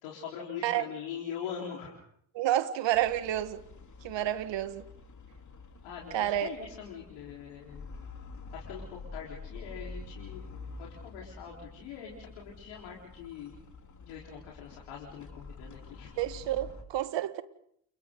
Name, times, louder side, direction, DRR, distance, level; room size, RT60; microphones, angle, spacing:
voice 1, 0.0-1.9 5.8-7.8 8.5-10.4 10.8-13.5 14.0-16.1, left 8 dB, 80° left, 4.3 m, -42 dB
voice 2, 2.4-3.6 4.0-4.8 6.1-6.5 16.2-17.4, right 13 dB, 65° right, 1.7 m, -29 dB
sound 1, 2.9-16.8, left 3 dB, 35° left, 3.5 m, -47 dB
29.5 x 29.0 x 3.9 m
hypercardioid pair, 50°, 47 cm